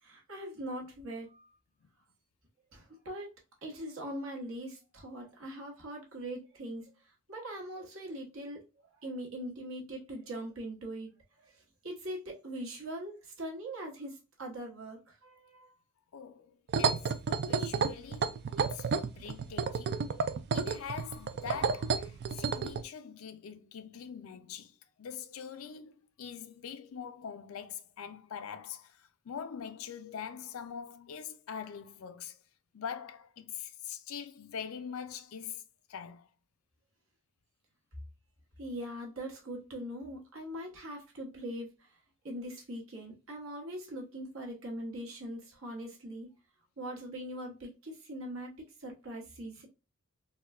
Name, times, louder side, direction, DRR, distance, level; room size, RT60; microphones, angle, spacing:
voice 1, 0.0-1.5 2.7-3.3 3.6-8.6 9.0-11.1 11.4-15.7 38.6-41.9 42.2-46.3 46.8-49.7, right 1 dB, 70° right, 1.2 m, -41 dB
voice 2, 16.1-20.1 20.5-32.4 32.7-35.6 35.9-36.3, left 7 dB, 75° left, 0.4 m, -43 dB
sound 1, 16.7-22.8, right 5 dB, 50° right, 0.3 m, -31 dB
4.0 x 2.2 x 2.4 m
head